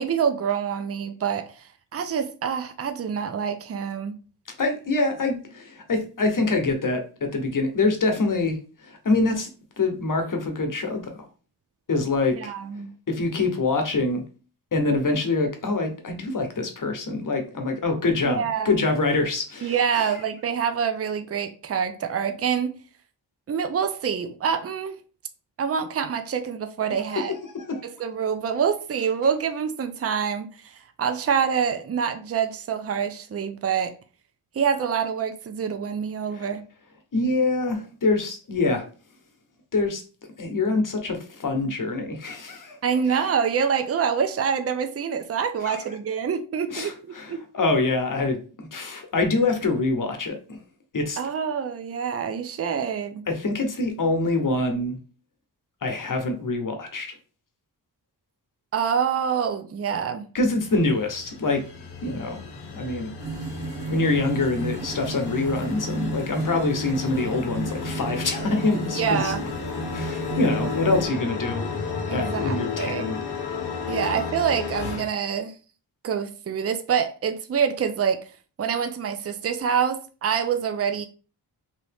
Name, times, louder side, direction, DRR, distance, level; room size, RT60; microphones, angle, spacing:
voice 1, 0.0-4.2 12.4-12.9 18.3-18.9 19.6-22.8 23.5-25.0 25.6-27.3 27.8-33.9 34.5-36.6 42.8-47.4 51.2-53.2 58.7-60.3 68.9-69.5 72.1-73.2 73.9-75.5 76.0-78.3 78.6-81.1, right 7 dB, 35° right, 0.4 m, -26 dB
voice 2, 4.6-8.6 8.8-9.5 9.8-11.0 11.9-12.5 13.1-14.2 14.7-20.1 27.5-27.9 37.1-38.8 39.7-40.0 40.4-42.8 45.6-45.9 46.7-50.6 50.9-51.2 53.3-55.0 55.8-57.1 60.3-61.6 62.0-62.4 62.7-63.1 63.9-69.3 69.9-71.7 72.1-73.2, left 3 dB, 50° left, 0.9 m, -25 dB
sound 1, 60.4-75.0, left 5 dB, 70° left, 0.7 m, -33 dB
sound 2, 63.2-71.1, right 4 dB, 85° right, 1.1 m, -33 dB
2.8 x 2.7 x 3.4 m
wide cardioid pair, 70°, 41 cm